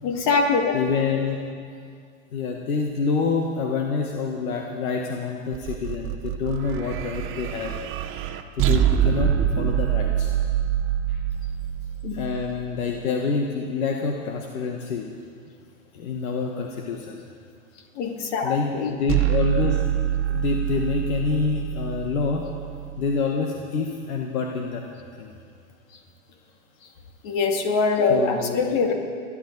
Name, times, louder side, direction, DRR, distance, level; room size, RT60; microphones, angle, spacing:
voice 1, 0.0-0.8 12.0-12.2 18.0-18.9 27.2-28.9, left 4 dB, 55° left, 2 dB, 2.5 m, -23 dB
voice 2, 0.7-1.4 2.3-7.7 8.6-10.3 11.1-11.2 12.1-15.1 15.9-17.2 18.4-19.8 20.3-22.4 23.0-24.8 25.2-25.3 28.1-28.6, left 5 dB, 80° left, 1 dB, 1.6 m, -27 dB
sound 1, 5.5-12.8 19.1-23.2, right 10 dB, 30° right, 0.9 m, -25 dB
29.5 x 11.5 x 4.1 m, 2.3 s
hypercardioid pair, 125°, 42 cm